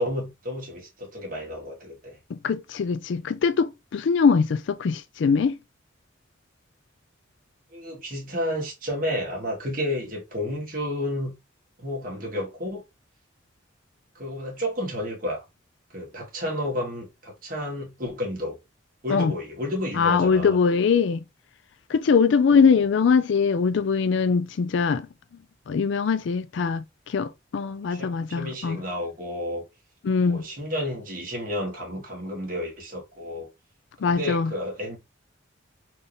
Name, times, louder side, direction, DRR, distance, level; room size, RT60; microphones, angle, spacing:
voice 1, 0.0-2.2 7.7-11.3 11.8-12.8 14.2-15.4 15.9-18.6 19.0-20.6 22.5-22.9 27.9-29.6 30.2-33.5 34.0-35.0, left 1 dB, 45° right, 1.7 m, -31 dB
voice 2, 2.3-5.6 19.1-19.3 20.0-21.2 21.9-25.1 25.7-26.8 27.1-28.8 30.0-30.4 34.0-34.5, left 5 dB, 65° left, 0.4 m, -22 dB
3.9 x 2.7 x 3.4 m
head